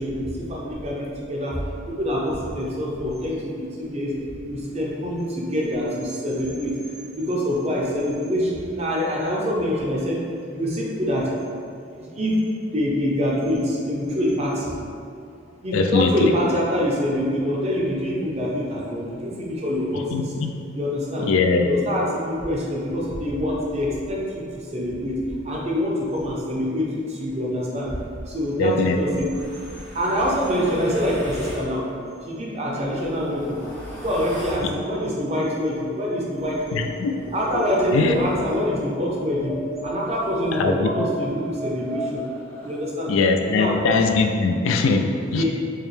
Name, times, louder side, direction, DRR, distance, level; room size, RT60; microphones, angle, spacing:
voice 1, 0.0-1.6 1.9-4.1 4.4-10.2 10.5-11.3 12.0-12.4 12.7-14.7 15.6-20.3 20.7-21.3 21.6-25.2 25.4-28.0 28.3-29.3 29.9-31.8 32.2-33.6 34.0-36.9 37.3-39.6 39.8-42.2 42.6-43.1 43.4-43.8 45.3-45.4, equal, 35° right, -4 dB, 0.6 m, -25 dB
voice 2, 15.7-16.3 20.1-20.5 21.2-21.7 28.6-29.0 36.7-37.1 37.6-37.7 37.9-38.2 40.5-40.9 43.1-45.4, left 4 dB, 85° left, 5 dB, 0.3 m, -21 dB
sound 1, 29.3-31.7 32.6-34.7 36.3-38.7 39.4-42.8, right 1 dB, 10° left, 0.6 m, -37 dB
4.8 x 2.1 x 3.2 m, 2.4 s
head